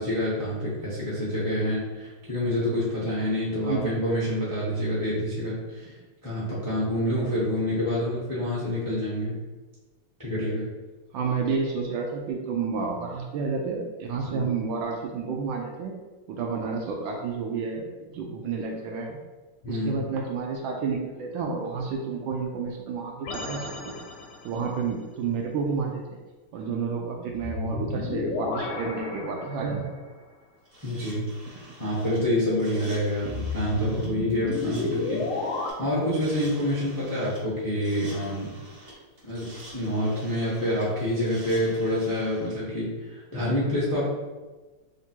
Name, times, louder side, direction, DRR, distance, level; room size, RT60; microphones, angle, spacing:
voice 1, 0.0-5.9 6.2-9.3 10.2-10.7 14.3-14.5 19.6-20.1 30.8-31.3 31.5-35.4 35.8-38.5 39.2-44.1, left 1 dB, 25° left, -9 dB, 0.4 m, -27 dB
voice 2, 11.1-15.9 16.3-19.2 19.7-23.9 24.4-26.2 26.5-29.9 33.2-33.4, right 5 dB, 75° right, 1 dB, 1.2 m, -30 dB
sound 1, 23.2-24.6 27.3-30.0 33.2-35.7, left 3 dB, 70° left, 1.2 m, -32 dB
sound 2, 30.6-42.6, right 1 dB, 30° right, 1.3 m, -48 dB
3.4 x 2.6 x 4.3 m, 1.3 s
omnidirectional pair, 2.3 m